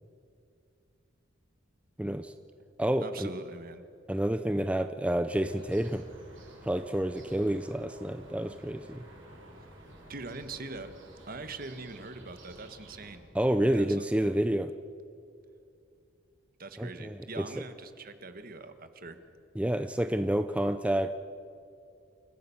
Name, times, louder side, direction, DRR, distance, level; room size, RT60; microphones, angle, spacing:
voice 1, 2.0-2.3 2.8-3.3 4.1-6.0 6.6-9.0 13.3-14.7 16.8-17.2 19.6-21.1, right 1 dB, 5° right, 9 dB, 0.5 m, -29 dB
voice 2, 3.0-3.8 9.6-9.7 10.1-10.9 11.3-13.3 13.7-14.0 16.6-19.2, right 3 dB, 50° right, 9 dB, 1.5 m, -42 dB
sound 1, 5.3-13.1, right 1 dB, 80° right, 5.6 m, -51 dB
28.5 x 14.5 x 7.1 m, 2.5 s
head